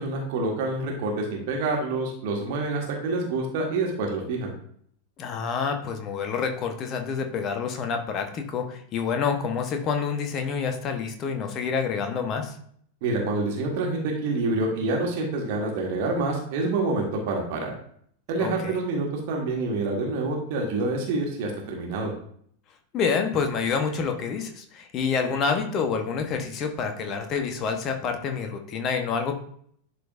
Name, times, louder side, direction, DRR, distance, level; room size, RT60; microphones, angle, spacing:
voice 1, 0.0-4.5 13.0-17.8 18.3-22.1, right 3 dB, 50° right, 0 dB, 1.6 m, -27 dB
voice 2, 5.2-12.6 18.4-18.8 22.9-29.3, left 5 dB, 35° left, 5 dB, 1.1 m, -28 dB
11.0 x 4.2 x 2.6 m, 0.62 s
figure-of-eight pair, 90°, 0 cm